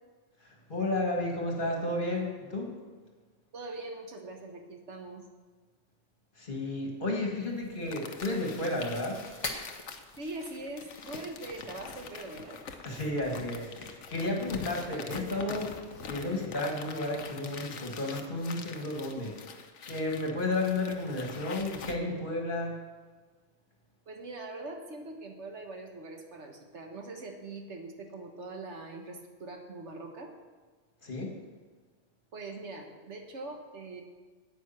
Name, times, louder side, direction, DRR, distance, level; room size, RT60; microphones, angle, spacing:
voice 1, 0.4-2.8 6.4-9.2 12.8-15.8 16.0-19.4 19.9-22.8 31.0-31.3, left 2 dB, 45° left, 0 dB, 2.0 m, -32 dB
voice 2, 3.5-5.2 10.2-12.6 24.1-30.3 32.3-34.0, right 2 dB, 75° right, 3 dB, 1.6 m, -42 dB
Chewing mastication, 7.4-17.2, left 2 dB, 30° left, 1.1 m, -47 dB
sound 1, 7.9-22.0, left 5 dB, 90° left, 1.1 m, -45 dB
9.5 x 8.8 x 5.8 m, 1.5 s
omnidirectional pair, 1.2 m